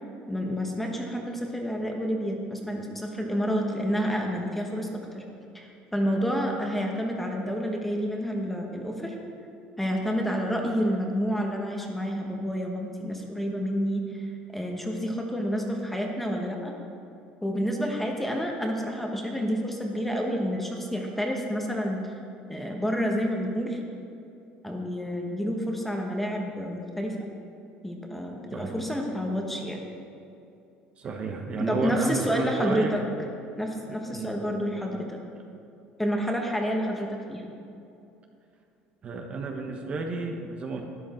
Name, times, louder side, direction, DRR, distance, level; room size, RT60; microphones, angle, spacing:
voice 1, 0.3-5.2 5.5-9.2 9.8-14.3 14.5-16.7 17.4-22.1 22.5-23.8 24.6-27.2 27.8-29.8 31.6-33.0 33.5-35.2 36.0-37.5, equal, 5° left, 1 dB, 1.4 m, -29 dB
voice 2, 31.0-32.9 33.9-34.3 39.0-40.9, right 4 dB, 35° right, 2 dB, 1.2 m, -31 dB
12.5 x 10.0 x 4.5 m, 2.7 s
cardioid pair, 125°, 3 cm